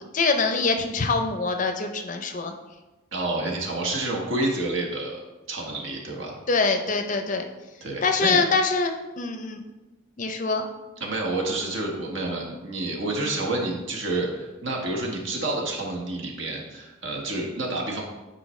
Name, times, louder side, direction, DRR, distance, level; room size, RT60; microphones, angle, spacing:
voice 1, 0.0-2.5 6.5-7.4 8.0-9.6 10.2-10.6, left 4 dB, 35° left, 5 dB, 0.5 m, -24 dB
voice 2, 3.1-5.2 5.5-6.4 7.8-8.4 11.0-18.0, right 2 dB, 60° right, -1 dB, 1.4 m, -29 dB
9.8 x 4.4 x 3.2 m, 1.1 s
head